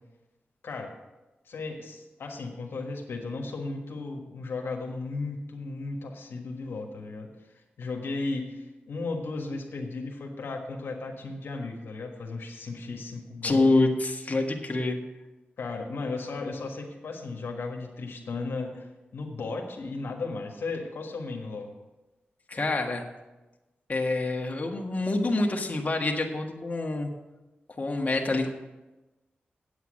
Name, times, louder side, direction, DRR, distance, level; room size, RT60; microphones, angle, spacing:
voice 1, 1.4-13.7 15.6-21.7, left 3 dB, 80° left, 1 dB, 1.4 m, -35 dB
voice 2, 13.4-15.0 22.5-23.0 23.9-27.1 27.8-28.5, left 2 dB, 40° left, 1 dB, 1.6 m, -26 dB
8.5 x 8.2 x 6.4 m, 1.1 s
cardioid pair, 50°, 4 cm